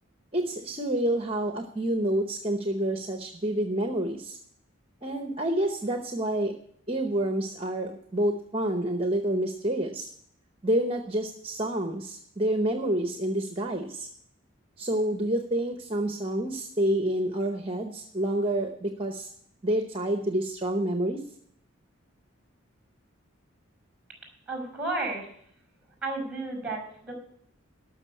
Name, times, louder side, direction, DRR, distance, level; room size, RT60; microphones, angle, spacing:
voice 1, 0.3-4.4 5.0-6.5 6.9-10.1 10.6-14.1 14.8-19.3 19.6-21.2, right 1 dB, 25° right, 4 dB, 0.9 m, -28 dB
voice 2, 24.5-25.3 26.0-27.2, right 2 dB, 5° right, 1 dB, 5.4 m, -32 dB
12.5 x 6.5 x 8.5 m, 0.67 s
head